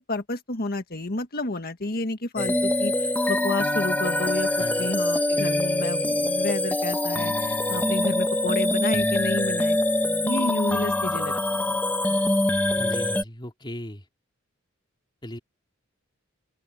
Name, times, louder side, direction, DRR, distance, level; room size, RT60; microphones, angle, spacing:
voice 1, 0.0-4.5 4.8-9.8 10.2-11.3 11.6-11.8, left 2 dB, 50° left, 1.7 m, -30 dB
sound 1, 2.4-13.2, left 1 dB, 10° left, 1.0 m, -24 dB
voice 2, 4.6-5.0 12.7-14.0 15.2-15.4, equal, 25° left, 4.0 m, -37 dB
open air
head